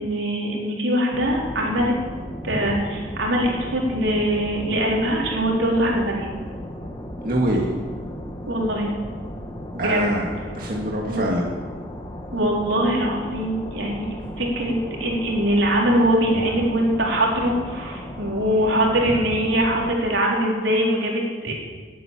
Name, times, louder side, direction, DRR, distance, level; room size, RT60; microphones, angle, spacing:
voice 1, 0.0-1.9 2.4-6.3 8.5-8.9 9.7-10.0 11.1-11.3 12.3-14.1 14.4-21.5, equal, 85° right, -2 dB, 4.1 m, -22 dB
sound 1, 1.1-20.0, equal, 25° left, 1.7 m, -36 dB
voice 2, 7.2-7.7 9.8-11.5, right 1 dB, 55° right, -2 dB, 2.0 m, -24 dB
19.5 x 9.4 x 7.6 m, 1.5 s
head